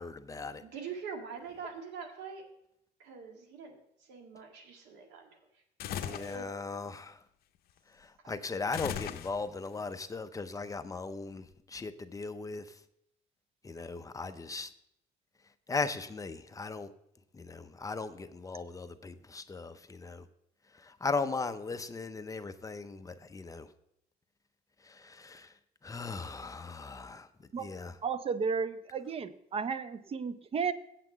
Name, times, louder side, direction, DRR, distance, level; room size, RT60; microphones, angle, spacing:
voice 1, 0.0-0.6 6.0-7.1 8.3-11.4 11.7-12.6 13.6-14.7 15.7-16.9 17.4-20.2 21.0-23.7 25.2-25.4 25.8-27.3 27.6-27.9, left 4 dB, 20° left, 0.6 m, -37 dB
voice 2, 0.6-2.4 3.0-5.6 6.0-6.5 8.3-8.4, right 6 dB, 85° right, 1.9 m, -44 dB
sound 1, 5.8-6.4 8.7-9.7, left 10 dB, 65° left, 0.7 m, -37 dB
voice 3, 28.0-30.7, right 5 dB, 35° right, 0.6 m, -33 dB
8.3 x 5.9 x 7.7 m
cardioid pair, 110°, 17 cm